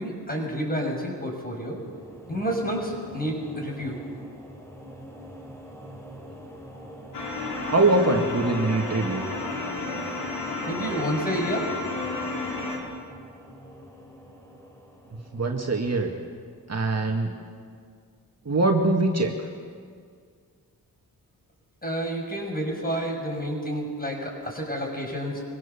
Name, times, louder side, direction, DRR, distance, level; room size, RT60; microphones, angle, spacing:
voice 1, 0.0-1.8 2.3-4.0 10.7-11.7 21.8-25.4, equal, 20° left, 1 dB, 6.5 m, -29 dB
sound 1, 1.4-16.7, equal, 5° left, 4.3 m, -45 dB
sound 2, 7.1-12.8, left 3 dB, 75° left, 3.8 m, -32 dB
voice 2, 7.6-9.2 15.3-16.1 16.7-17.3 18.5-19.5, right 2 dB, 40° right, 2 dB, 2.0 m, -23 dB
23.5 x 17.0 x 7.1 m, 2.1 s
cardioid pair, 55°, 40 cm